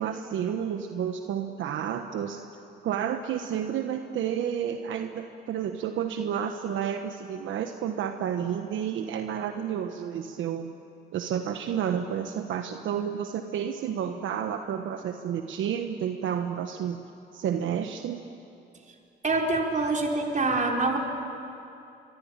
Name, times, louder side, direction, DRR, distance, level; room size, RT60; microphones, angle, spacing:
voice 1, 0.0-2.4 2.8-10.7 11.1-17.0 17.3-18.2, right 8 dB, 75° right, 6 dB, 1.2 m, -30 dB
voice 2, 19.2-21.0, right 3 dB, 40° right, 1 dB, 4.3 m, -25 dB
24.0 x 24.0 x 9.0 m, 2.7 s
cardioid pair, 90°, 20 cm